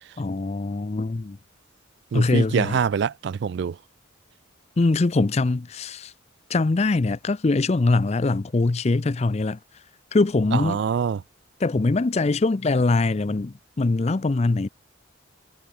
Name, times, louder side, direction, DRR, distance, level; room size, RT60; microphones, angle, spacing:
voice 1, 0.2-1.4 2.1-2.8 4.8-6.1 6.5-9.6 10.1-10.8 11.6-14.7, left 3 dB, 30° left, 0.5 m, -22 dB
voice 2, 2.1-3.8 10.5-11.2, right 7 dB, 55° right, 0.3 m, -25 dB
head